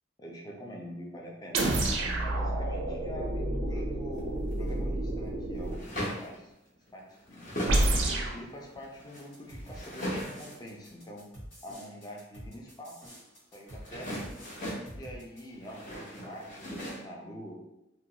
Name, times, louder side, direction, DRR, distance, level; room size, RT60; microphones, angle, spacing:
voice 1, 0.2-1.7 2.2-6.0 6.2-6.5 6.9-7.6 8.3-11.3 11.6-13.0 13.5-14.2 14.9-17.6, equal, 20° left, -1 dB, 0.4 m, -45 dB
sound 1, 1.5-5.8 7.7-8.4, right 1 dB, 80° right, 0.4 m, -29 dB
sound 2, 4.2-4.7 5.6-6.4 6.9-7.9 8.3-10.6 13.7-14.9 15.5-17.0, equal, 45° left, 0.8 m, -38 dB
sound 3, 9.1-15.4, equal, 75° left, 1.2 m, -48 dB
2.4 x 2.2 x 2.8 m, 0.90 s
head